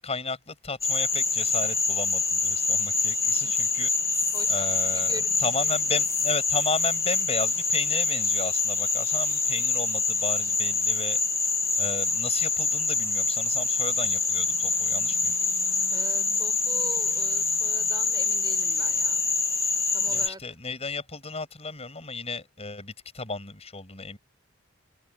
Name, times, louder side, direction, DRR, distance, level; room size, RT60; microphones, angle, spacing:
voice 1, 0.0-11.2 11.8-15.4 15.7-15.9 20.0-24.2, left 4 dB, 30° left, 7.4 m, -34 dB
Frog, 0.8-20.3, left 4 dB, 15° left, 1.5 m, -25 dB
voice 2, 3.2-3.5 4.3-6.0 15.9-19.2 19.9-20.4, right 2 dB, 20° right, 4.4 m, -43 dB
open air
head